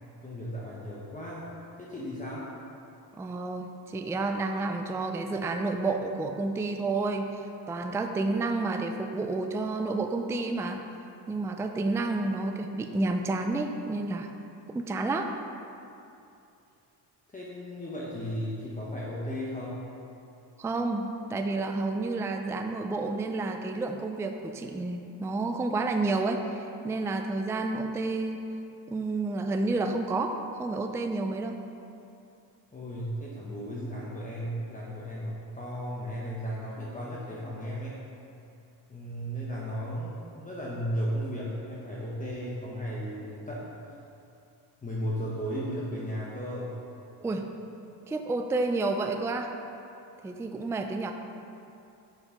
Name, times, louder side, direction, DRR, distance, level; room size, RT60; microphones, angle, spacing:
voice 1, 0.2-1.5 1.8-2.5 17.3-19.8 32.7-38.0 38.9-43.7 44.8-46.7, equal, 20° left, -6 dB, 1.1 m, -35 dB
voice 2, 3.2-7.4 7.7-10.8 11.3-14.3 14.7-15.3 20.6-28.4 28.9-30.3 30.6-31.6 47.2-47.5 48.1-49.5 50.2-51.1, right 3 dB, 5° right, 4 dB, 0.3 m, -30 dB
7.2 x 6.3 x 5.1 m, 2.7 s
cardioid pair, 120°, 43 cm